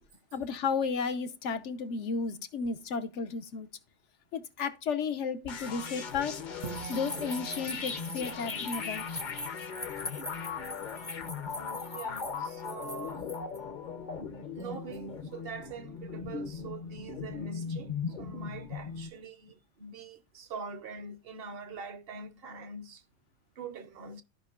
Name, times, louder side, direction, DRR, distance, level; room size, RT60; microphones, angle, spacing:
voice 1, 0.3-3.7 4.3-6.4 6.9-9.1, left 5 dB, 70° left, 1.1 m, -33 dB
sound 1, 5.5-19.1, left 5 dB, 45° left, 0.8 m, -39 dB
sound 2, 6.6-13.6, left 2 dB, 10° left, 0.6 m, -43 dB
Bowed string instrument, 6.6-9.8, right 9 dB, 85° right, 1.0 m, -46 dB
voice 2, 11.9-13.3 14.1-14.2 14.5-23.0 23.6-24.2, right 4 dB, 55° right, 0.9 m, -44 dB
14.0 x 5.2 x 2.4 m
omnidirectional pair, 1.3 m